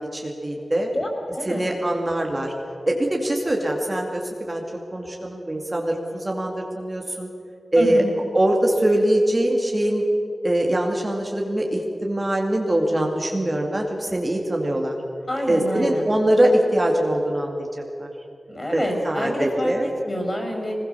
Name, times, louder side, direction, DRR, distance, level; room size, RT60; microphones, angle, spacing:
voice 1, 0.1-0.9 1.5-2.5 2.9-4.6 4.9-7.3 7.7-8.0 8.3-10.0 10.4-15.0 15.5-18.1 18.7-19.9, right 1 dB, 25° right, 0 dB, 2.4 m, -22 dB
voice 2, 0.9-1.6 7.8-8.1 15.3-16.0 18.5-19.7 20.0-20.7, equal, 30° left, 2 dB, 5.8 m, -27 dB
23.0 x 20.5 x 6.9 m, 2.8 s
wide cardioid pair, 105°, 0 cm